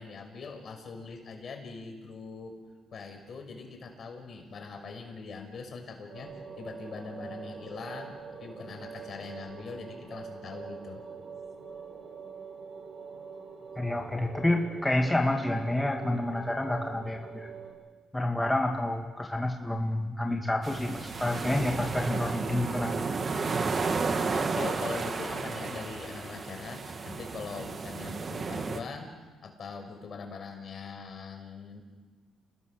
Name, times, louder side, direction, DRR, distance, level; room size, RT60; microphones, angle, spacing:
voice 1, 0.0-2.6 2.9-8.1 8.4-11.0 24.3-29.1 29.4-31.8, left 4 dB, 55° left, 4 dB, 5.6 m, -42 dB
sound 1, 6.1-17.7, right 5 dB, 65° right, 6.9 m, -44 dB
voice 2, 13.8-17.5 18.1-23.1, left 1 dB, 10° left, 1 dB, 2.1 m, -29 dB
sound 2, 20.6-28.8, right 4 dB, 40° right, 2.0 m, -32 dB
29.5 x 20.0 x 6.7 m, 1.4 s
cardioid pair, 90°, 0 cm